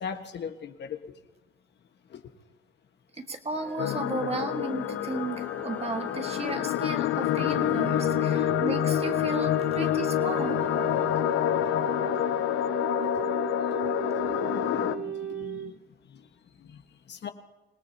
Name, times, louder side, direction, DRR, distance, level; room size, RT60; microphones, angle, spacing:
voice 1, 0.0-1.0 8.5-8.6 13.2-13.3 13.9-15.7 17.1-17.3, left 7 dB, 60° left, 6 dB, 1.5 m, -39 dB
voice 2, 3.2-10.6, right 3 dB, 30° right, 5 dB, 1.7 m, -34 dB
sound 1, 3.5-11.9, left 1 dB, 10° left, 2.1 m, -45 dB
sound 2, 3.8-15.0, left 13 dB, 80° left, 0.7 m, -27 dB
Wind instrument woodwind instrument, 7.1-15.7, right 8 dB, 80° right, 1.4 m, -36 dB
26.0 x 18.5 x 2.9 m, 1.1 s
cardioid pair, 90°, 20 cm